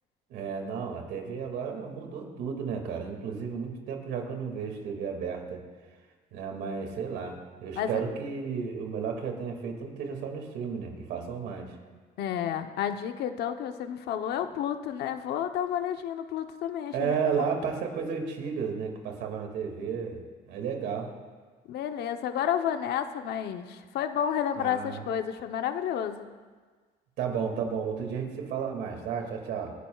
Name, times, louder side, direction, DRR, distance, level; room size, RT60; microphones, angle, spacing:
voice 1, 0.3-5.6 6.3-11.7 16.9-20.2 20.5-21.1 24.6-25.0 27.2-29.7, right 6 dB, 85° right, 3 dB, 2.3 m, -33 dB
voice 2, 12.2-17.1 21.7-26.3, left 9 dB, 75° left, 7 dB, 0.9 m, -31 dB
27.0 x 10.5 x 2.4 m, 1.5 s
cardioid pair, 110°, 17 cm